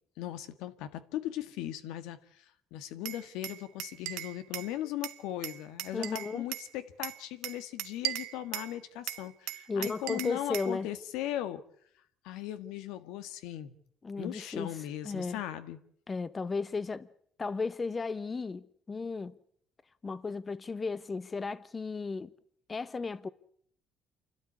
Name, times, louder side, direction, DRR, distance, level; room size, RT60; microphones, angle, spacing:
voice 1, 0.2-11.6 12.2-13.8 14.2-15.8, left 12 dB, 90° left, 1.8 m, -38 dB
Glass, 3.1-4.7 5.0-6.7 7.0-8.7 9.1-10.7, right 17 dB, 90° right, 1.1 m, -38 dB
voice 2, 5.9-6.4 9.7-10.9 14.0-14.8 15.0-15.4 16.1-17.1 17.4-19.4 20.0-22.3 22.7-23.3, left 4 dB, 30° left, 1.0 m, -35 dB
28.0 x 12.5 x 9.7 m
cardioid pair, 85°, 0 cm